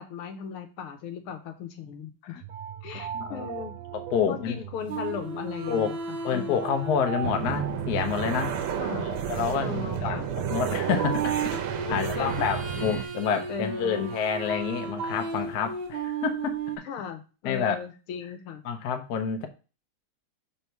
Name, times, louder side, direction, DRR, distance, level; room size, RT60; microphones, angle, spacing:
voice 1, 0.0-2.4 2.8-3.8 4.3-6.6 8.7-9.1 9.5-10.3 11.9-12.3 12.8-13.1 13.3-14.1 16.8-18.6, left 6 dB, 85° left, 1.7 m, -37 dB
sound 1, 2.4-15.2, right 8 dB, 70° right, 1.0 m, -41 dB
voice 2, 3.1-3.4 3.9-4.5 5.7-5.9 6.2-8.6 9.0-16.6 17.4-17.8 18.6-19.5, left 7 dB, 60° left, 1.1 m, -28 dB
sound 2, 4.9-9.9 10.9-16.8, right 5 dB, 35° right, 1.0 m, -35 dB
sound 3, 7.2-13.0, right 8 dB, 90° right, 1.6 m, -31 dB
5.5 x 4.0 x 4.6 m
omnidirectional pair, 2.4 m